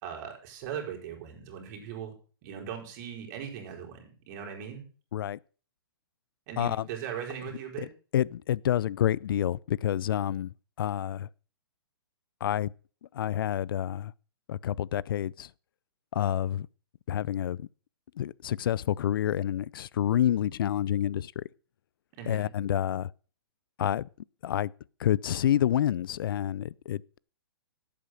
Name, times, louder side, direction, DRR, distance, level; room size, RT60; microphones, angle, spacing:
voice 1, 0.0-2.1 2.4-4.9 6.5-7.9 22.2-22.5, right 8 dB, 40° right, 5.3 m, -39 dB
voice 2, 6.6-6.9 8.1-11.3 12.4-12.7 13.1-14.1 14.5-15.5 16.1-16.7 17.1-17.7 18.2-21.4 22.2-23.1 23.8-24.1 24.4-24.7 25.0-27.2, left 11 dB, 65° left, 0.5 m, -28 dB
11.5 x 8.6 x 6.3 m
hypercardioid pair, 130°, 13 cm